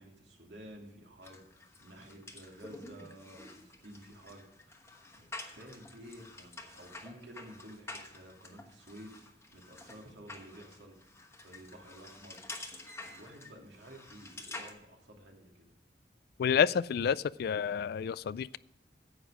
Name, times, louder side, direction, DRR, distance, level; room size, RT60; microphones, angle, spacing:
voice 1, 0.0-11.1 11.4-15.7, right 1 dB, 75° right, 0 dB, 2.6 m, -52 dB
sound 1, 1.2-14.7, left 2 dB, 15° left, 1.2 m, -49 dB
voice 2, 16.4-18.6, left 7 dB, 60° left, 20 dB, 0.3 m, -29 dB
10.0 x 8.1 x 4.9 m, 0.82 s
head